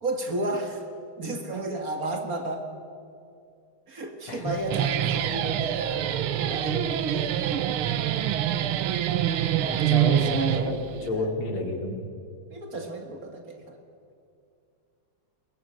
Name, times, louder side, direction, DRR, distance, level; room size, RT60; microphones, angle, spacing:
voice 1, 0.0-0.8 1.2-2.7 3.9-6.1 6.4-7.7 9.6-11.3 12.5-13.8, right 2 dB, 45° right, 5 dB, 2.2 m, -33 dB
Guitar, 4.5-11.1, right 11 dB, 80° right, 1.8 m, -26 dB
voice 2, 9.2-9.5 9.9-10.7 11.0-12.0, left 2 dB, 85° left, 3 dB, 3.8 m, -30 dB
22.5 x 21.0 x 9.1 m, 2.5 s
omnidirectional pair, 2.3 m